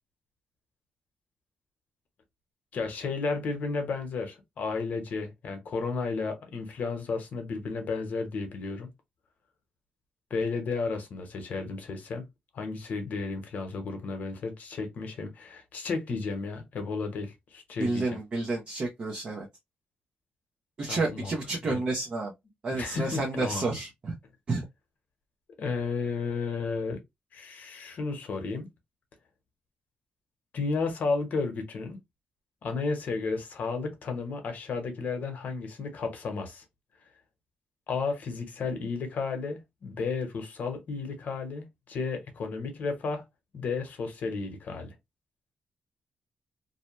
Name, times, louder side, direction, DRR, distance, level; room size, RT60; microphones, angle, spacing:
voice 1, 2.7-8.9 10.3-12.2 12.5-18.2 20.9-21.3 21.7-21.8 22.7-23.8 25.6-27.0 27.3-28.7 30.5-32.0 32.6-36.6 37.9-43.2 43.5-44.9, left 4 dB, 60° left, 0.9 m, -33 dB
voice 2, 17.8-19.5 20.8-22.3 22.6-24.1 24.5-24.6, right 3 dB, 40° right, 0.6 m, -30 dB
2.7 x 2.1 x 3.0 m
cardioid pair, 120°, 3 cm